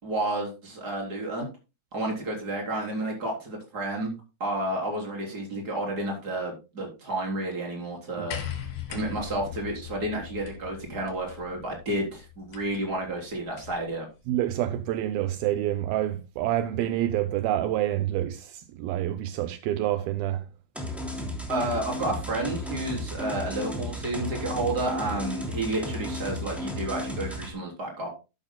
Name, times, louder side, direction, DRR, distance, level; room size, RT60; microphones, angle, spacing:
voice 1, 0.0-1.5 1.9-8.4 8.9-14.1 21.5-28.1, right 1 dB, 25° right, 3.9 m, -31 dB
sound 1, 8.3-13.9 15.0-15.1, left 9 dB, 75° left, 3.6 m, -40 dB
voice 2, 14.3-20.5, right 13 dB, 80° right, 2.5 m, -27 dB
sound 2, 20.7-27.5, left 1 dB, ahead, 2.6 m, -34 dB
12.5 x 11.5 x 2.2 m
omnidirectional pair, 4.3 m